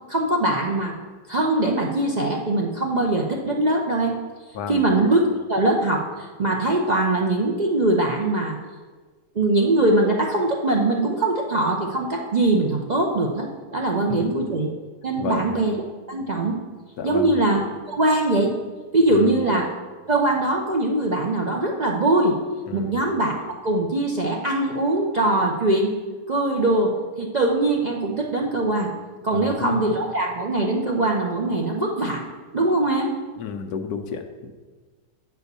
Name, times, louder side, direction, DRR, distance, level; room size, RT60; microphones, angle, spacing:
voice 1, 0.1-0.9 1.3-4.1 4.7-8.6 9.3-14.7 15.0-15.7 16.1-16.6 17.0-17.6 17.9-18.5 18.9-19.7 20.1-22.3 22.7-25.9 26.3-26.9 27.2-28.9 29.2-32.3 32.5-33.1, right 2 dB, 65° right, 0 dB, 0.4 m, -22 dB
voice 2, 15.2-15.5 17.0-17.3 19.1-19.4 22.7-23.0 29.3-29.8 33.4-34.6, left 6 dB, 70° left, 6 dB, 1.2 m, -31 dB
8.1 x 4.4 x 6.7 m, 1.4 s
omnidirectional pair, 1.7 m